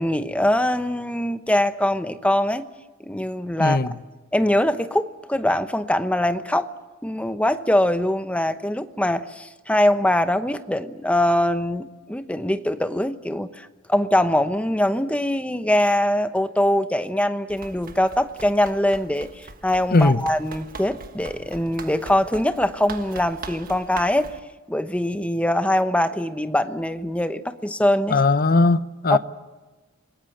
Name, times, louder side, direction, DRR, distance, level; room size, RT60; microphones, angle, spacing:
voice 1, 0.0-2.7 3.0-3.8 4.3-6.7 7.0-24.3 24.7-28.2 29.1-29.2, left 1 dB, 5° left, 1.0 m, -22 dB
voice 2, 3.6-3.9 19.9-20.2 28.1-29.2, left 3 dB, 45° left, 0.9 m, -18 dB
Run, 17.5-24.4, right 4 dB, 45° right, 1.5 m, -41 dB
28.0 x 20.0 x 7.9 m
head